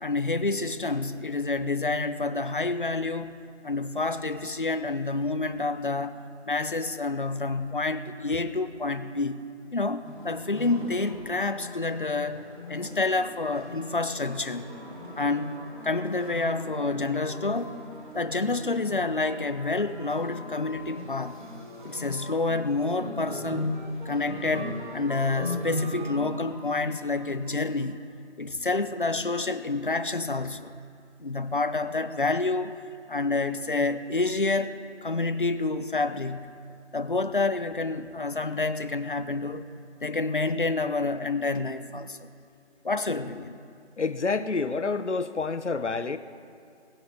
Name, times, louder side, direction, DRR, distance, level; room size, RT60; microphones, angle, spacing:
voice 1, 0.0-3.4 3.6-6.2 6.5-9.4 9.7-12.4 12.7-14.6 15.2-15.6 15.8-17.8 18.1-21.4 21.8-23.7 24.0-28.0 28.4-30.7 31.2-32.8 33.1-34.7 35.0-36.5 36.9-39.6 40.0-42.3 42.8-43.6, left 3 dB, 45° left, 11 dB, 0.8 m, -28 dB
sound 1, 10.0-27.9, left 1 dB, 45° right, 2.6 m, -38 dB
voice 2, 44.0-46.2, left 4 dB, 85° left, 12 dB, 1.0 m, -28 dB
20.5 x 7.5 x 5.3 m, 2.4 s
figure-of-eight pair, 175°, 34 cm